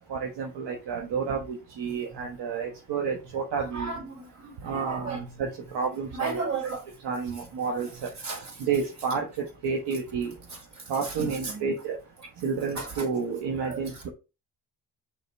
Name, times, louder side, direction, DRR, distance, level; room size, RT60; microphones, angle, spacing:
voice 1, 0.1-3.9 4.6-5.5 5.7-6.7 7.0-7.9 8.6-9.3 9.6-10.3 10.9-12.0 12.4-14.1, right 5 dB, 65° right, 1.3 m, -30 dB
voice 2, 3.5-5.5 6.1-6.8 7.9-8.6 10.5-11.7 12.8-13.1 13.6-14.1, right 4 dB, 40° right, 3.5 m, -36 dB
6.7 x 4.1 x 3.4 m
supercardioid pair, 55°, 43 cm